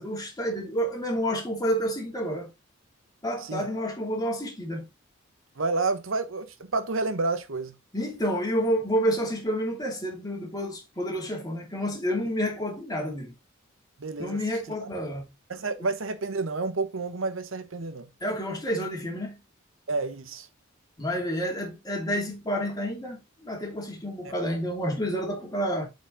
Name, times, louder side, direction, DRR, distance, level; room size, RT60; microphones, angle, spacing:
voice 1, 0.0-2.5 3.2-4.9 7.9-13.3 14.2-15.2 18.2-19.4 21.0-25.9, equal, 20° left, 2.7 m, -29 dB
voice 2, 5.6-7.7 14.0-14.4 14.7-14.8 15.5-18.1 19.9-20.5, right 3 dB, 70° right, 0.9 m, -29 dB
8.5 x 4.9 x 3.8 m
head